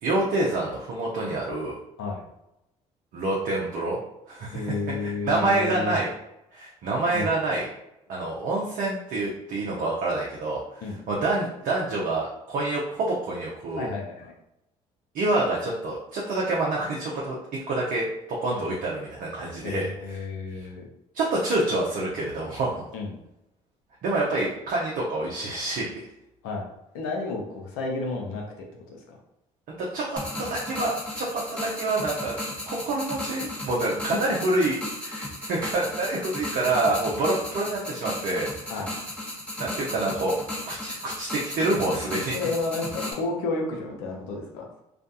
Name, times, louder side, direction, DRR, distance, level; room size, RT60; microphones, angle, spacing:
voice 1, 0.0-1.8 3.1-4.0 4.3-4.7 5.0-6.1 6.5-7.7 8.1-10.6 11.1-13.9 15.1-17.4 17.7-20.2 21.1-22.9 24.0-25.9 29.8-32.4 32.7-38.7 39.6-40.4 40.7-42.4, right 2 dB, 60° right, -4 dB, 0.6 m, -27 dB
voice 2, 4.5-5.9 7.1-7.3 10.8-11.0 13.7-14.3 18.5-18.6 19.6-20.9 22.9-23.2 26.4-26.7 26.9-29.2 38.7-38.9 42.3-44.7, left 3 dB, 80° left, 0 dB, 0.6 m, -31 dB
sound 1, 30.2-43.1, left 1 dB, 5° left, 0.9 m, -35 dB
2.4 x 2.2 x 2.6 m, 0.85 s
hypercardioid pair, 60°, 16 cm